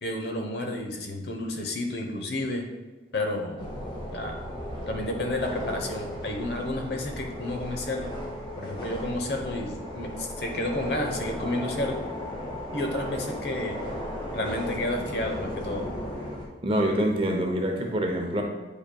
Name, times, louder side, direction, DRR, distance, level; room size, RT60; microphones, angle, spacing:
voice 1, 0.0-2.7 3.1-3.7 4.1-4.4 4.9-8.1 8.6-12.0 12.7-13.8 14.3-15.9, left 1 dB, 65° left, 3 dB, 1.0 m, -31 dB
sound 1, 3.6-16.5, equal, 25° left, 1.3 m, -35 dB
voice 2, 16.6-18.4, right 1 dB, 30° right, 2 dB, 0.7 m, -25 dB
8.6 x 5.3 x 2.3 m, 1.3 s
head